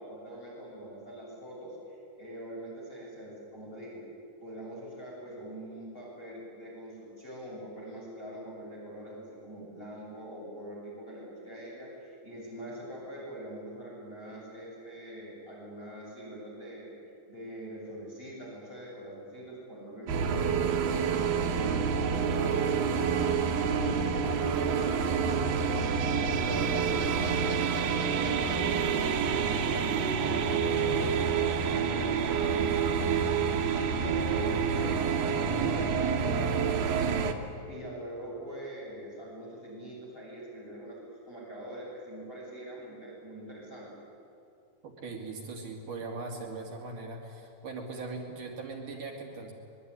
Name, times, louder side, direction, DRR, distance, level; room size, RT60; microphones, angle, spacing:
voice 1, 0.0-4.0 4.4-16.9 17.3-27.7 28.1-30.1 30.6-43.9, right 1 dB, 15° left, -5 dB, 7.7 m, -44 dB
sound 1, 20.1-37.3, right 6 dB, 85° right, 3.4 m, -28 dB
voice 2, 44.8-49.5, right 3 dB, 65° right, 1 dB, 4.0 m, -40 dB
24.0 x 22.5 x 9.9 m, 2.7 s
omnidirectional pair, 3.9 m